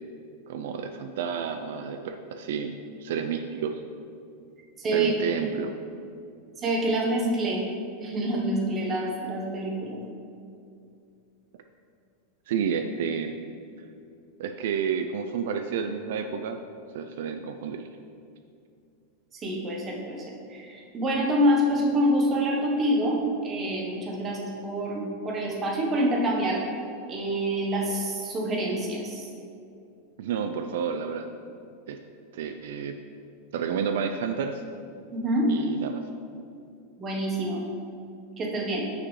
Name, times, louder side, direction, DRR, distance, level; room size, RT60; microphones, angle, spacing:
voice 1, 0.5-3.8 4.9-5.7 12.5-13.4 14.4-16.6 16.9-17.9 30.2-31.3 31.9-32.0 32.3-33.0 33.5-34.6 35.5-36.0, right 7 dB, 70° right, 6 dB, 0.3 m, -30 dB
voice 2, 4.8-5.1 6.6-7.6 8.0-10.0 19.3-26.6 27.1-29.3 35.1-35.5 37.0-37.6 38.4-38.9, right 1 dB, 20° right, -1 dB, 1.0 m, -26 dB
6.2 x 5.9 x 3.1 m, 2.5 s
supercardioid pair, 150°, 0 cm